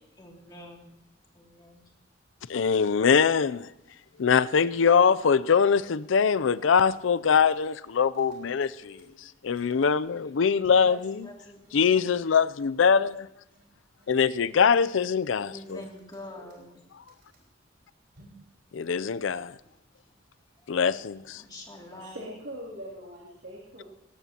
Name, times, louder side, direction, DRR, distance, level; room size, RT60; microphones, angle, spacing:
voice 1, 0.2-0.9 1.3-1.9 10.1-10.3 10.7-12.1 15.4-16.7 21.4-22.2, left 1 dB, 25° left, 2.6 m, -46 dB
voice 2, 2.5-3.7 4.2-9.0 9.4-11.3 11.7-13.3 14.1-15.9 18.7-19.5 20.7-21.4, left 6 dB, 90° left, 0.5 m, -23 dB
sound 1, 4.2-4.3 4.6-4.7 5.0-5.2 5.5-5.6 6.0-6.1 6.5-6.6 6.9-7.8 8.1-9.9 10.6-10.9 11.2-11.3 11.6-11.7 12.1-12.2 12.6-12.7 13.0-13.2 13.5-13.6 14.0-14.1 14.5-15.3 15.7-17.4 18.2-18.4, right 1 dB, 60° right, 5.6 m, -56 dB
voice 3, 21.8-23.8, equal, 80° right, 2.9 m, -42 dB
18.5 x 18.0 x 2.9 m
head